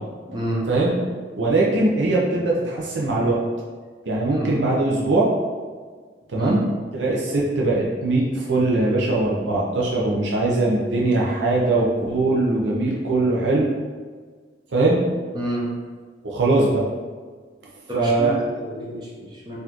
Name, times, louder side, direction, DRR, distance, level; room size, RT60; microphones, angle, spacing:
voice 1, 0.3-0.7 4.3-4.5 6.4-6.6 15.3-15.7 17.9-19.6, equal, 25° right, -4 dB, 0.7 m, -29 dB
voice 2, 1.4-3.4 4.1-5.3 6.3-6.6 6.9-13.7 14.7-15.0 16.2-16.8 17.9-18.3, right 2 dB, 90° right, -4 dB, 0.6 m, -21 dB
4.1 x 2.6 x 2.9 m, 1.6 s
head